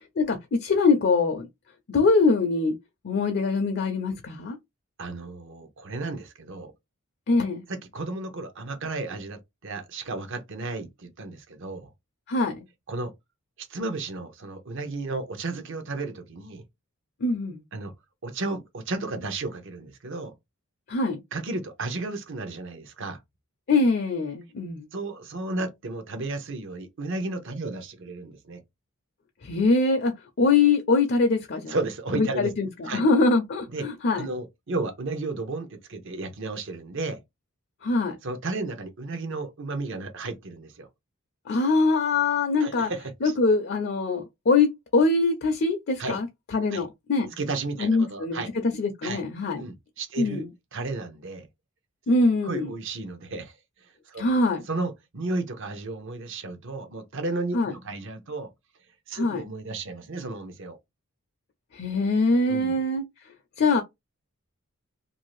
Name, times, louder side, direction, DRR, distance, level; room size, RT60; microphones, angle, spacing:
voice 1, 0.2-1.5 1.9-2.7 3.0-4.6 7.3-7.7 12.3-12.6 17.2-17.6 20.9-21.2 23.7-24.9 29.4-31.8 32.1-34.3 37.8-38.2 41.5-42.9 43.2-47.3 47.8-48.4 48.8-49.6 50.2-50.5 52.1-52.7 54.2-54.6 57.5-57.7 59.1-59.4 61.7-63.0 63.6-63.8, left 3 dB, 50° left, 0.5 m, -23 dB
voice 2, 5.0-6.7 7.7-11.9 12.9-13.1 13.6-16.6 17.7-17.9 18.2-20.3 21.3-23.2 24.9-28.6 31.7-32.5 32.8-33.0 33.7-33.9 34.1-37.2 38.2-40.9 42.6-43.3 46.0-46.2 46.7-46.9 47.4-48.5 49.0-49.2 49.6-50.4 50.7-51.5 52.4-53.5 53.8-54.3 54.7-58.5 59.1-60.8 62.5-62.8, right 3 dB, 55° right, 0.7 m, -33 dB
2.6 x 2.4 x 3.0 m
head